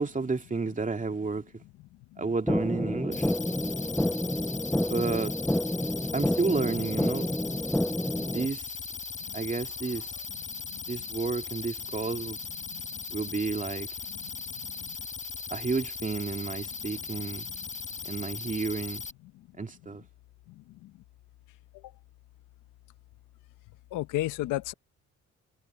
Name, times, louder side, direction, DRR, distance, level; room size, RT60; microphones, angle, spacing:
voice 1, 0.0-1.6 2.2-3.3 4.8-5.4 6.1-7.3 8.3-8.7 9.3-10.1 10.9-12.4 13.1-13.9 15.5-17.5 18.0-19.0 19.6-20.0, right 4 dB, 25° right, 2.5 m, -31 dB
sound 1, 2.5-8.5, left 1 dB, 5° left, 0.6 m, -29 dB
sound 2, 3.1-19.1, left 5 dB, 25° left, 4.3 m, -38 dB
voice 2, 23.9-24.7, left 16 dB, 90° left, 0.7 m, -31 dB
cardioid pair, 90°, 30 cm